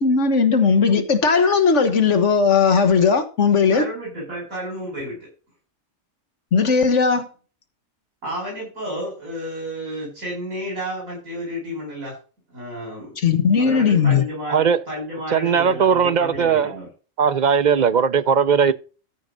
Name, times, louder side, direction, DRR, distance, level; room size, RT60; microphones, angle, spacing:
voice 1, 0.0-3.9 6.5-7.3 13.2-14.2, left 5 dB, 60° left, 1.6 m, -17 dB
voice 2, 3.7-5.2 8.2-12.1 12.5-13.1 13.6-16.9, equal, 85° right, 6.1 m, -31 dB
voice 3, 14.5-14.8 15.3-16.8 17.2-18.7, right 6 dB, 50° right, 0.6 m, -18 dB
13.5 x 4.9 x 5.3 m
omnidirectional pair, 1.4 m